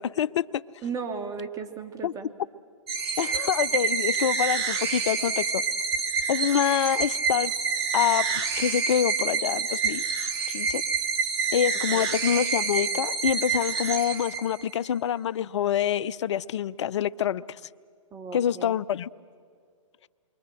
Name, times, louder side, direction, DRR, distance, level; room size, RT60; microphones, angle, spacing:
voice 1, 0.0-0.6 2.0-2.1 3.2-5.6 6.3-7.5 7.9-10.0 10.5-10.8 11.5-17.4 18.3-19.1, left 9 dB, 60° left, 0.6 m, -26 dB
voice 2, 0.8-2.3 11.9-12.1 18.1-18.8, right 5 dB, 20° right, 1.9 m, -35 dB
sound 1, 2.9-14.8, right 5 dB, 50° right, 2.2 m, -28 dB
28.0 x 24.5 x 7.7 m
hypercardioid pair, 130°, 17 cm